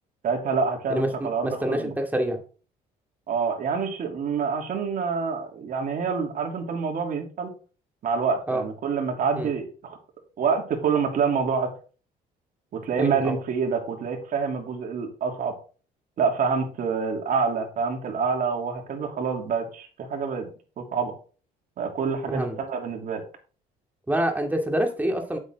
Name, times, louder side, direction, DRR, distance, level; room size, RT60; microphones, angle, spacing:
voice 1, 0.2-1.9 3.3-7.5 8.0-10.0 10.4-11.7 12.7-15.5 16.2-20.5 20.8-21.1 21.8-23.2, right 5 dB, 55° right, 3 dB, 2.9 m, -27 dB
voice 2, 1.4-2.4 8.5-8.6 9.4-9.5 13.0-13.4 22.3-22.6 24.1-25.4, right 1 dB, 10° right, 3 dB, 2.3 m, -26 dB
8.5 x 8.2 x 3.7 m, 0.37 s
cardioid pair, 110°, 17 cm